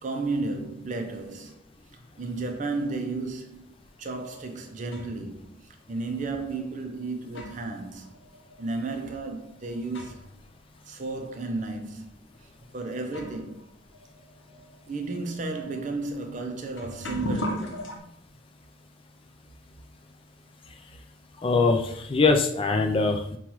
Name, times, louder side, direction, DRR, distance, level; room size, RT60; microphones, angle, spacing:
voice 1, 0.0-1.6 1.9-3.7 4.0-8.2 8.6-10.2 10.9-12.1 12.6-13.6 14.9-17.8, right 3 dB, 35° right, 0.5 m, -33 dB
sound 1, 4.4-5.3 6.2-6.3 7.0-10.4 10.7-10.8 11.6-11.8 12.6-12.7 13.0-18.0, equal, 65° left, 0.7 m, -38 dB
voice 2, 21.4-23.4, left 3 dB, 25° left, 0.3 m, -22 dB
5.4 x 2.3 x 3.0 m
head